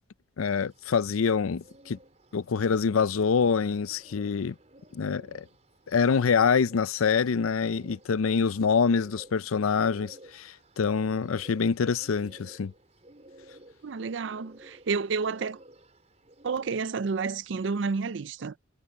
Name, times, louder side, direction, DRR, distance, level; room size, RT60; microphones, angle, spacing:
voice 1, 0.4-2.0 2.3-4.5 4.9-5.4 5.9-12.7, left 6 dB, 90° left, 0.5 m, -25 dB
Bird, 0.6-17.9, right 1 dB, 35° right, 4.2 m, -54 dB
voice 2, 13.8-15.6 16.4-18.6, right 4 dB, 65° right, 0.5 m, -30 dB
head